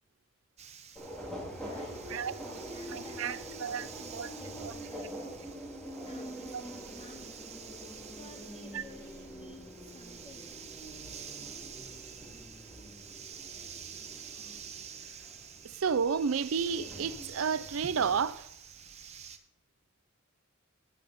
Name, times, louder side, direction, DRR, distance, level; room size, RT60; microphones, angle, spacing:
sound 1, 0.6-19.4, right 7 dB, 35° right, 1.0 m, -48 dB
Subway metro underground, 1.0-18.2, equal, 5° left, 2.6 m, -45 dB
voice 1, 1.6-2.0 2.4-5.3 6.0-7.4 8.1-10.6, left 1 dB, 30° left, 2.5 m, -53 dB
voice 2, 2.9-3.9 4.1-4.3 4.6-4.7 8.7-8.8 15.6-18.5, right 6 dB, 75° right, 0.5 m, -31 dB
15.5 x 10.5 x 4.2 m
head